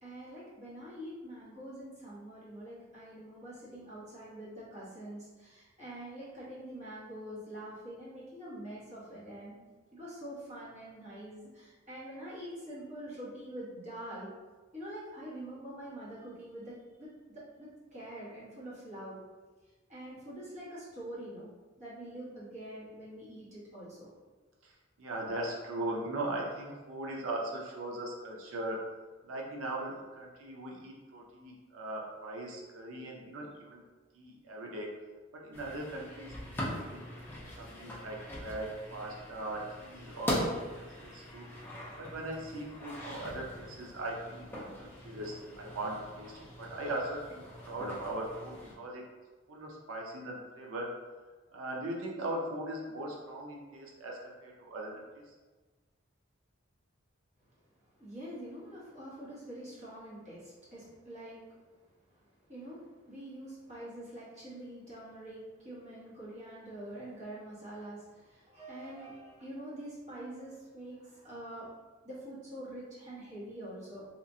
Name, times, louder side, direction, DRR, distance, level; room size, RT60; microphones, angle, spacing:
voice 1, 0.0-9.6 9.9-14.3 14.7-19.2 19.9-21.5 21.8-24.1 58.0-61.4 62.5-71.7 72.0-74.0, right 1 dB, 35° right, -9 dB, 1.1 m, -45 dB
voice 2, 24.6-28.8 29.2-33.8 34.1-34.9 35.3-37.0 37.6-40.4 40.7-41.5 42.0-49.0 49.5-50.9 51.5-55.3, right 1 dB, 90° right, -1 dB, 0.5 m, -39 dB
sound 1, 35.5-48.7, equal, 10° left, 0.5 m, -41 dB
2.9 x 2.4 x 2.6 m, 1.3 s
head